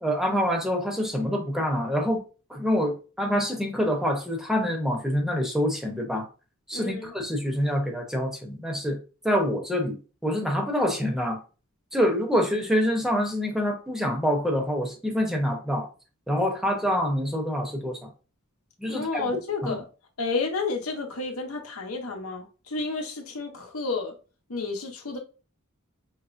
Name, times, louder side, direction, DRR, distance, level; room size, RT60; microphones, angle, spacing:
voice 1, 0.0-2.2 2.5-6.3 6.7-9.0 9.2-10.0 10.2-11.4 11.9-15.9 16.3-18.1 18.8-19.2 19.6-19.8, equal, ahead, 0.8 m, -26 dB
voice 2, 6.7-7.1 18.9-19.8 20.2-24.1 24.5-25.2, left 3 dB, 80° left, 1.0 m, -31 dB
5.6 x 3.2 x 2.5 m
head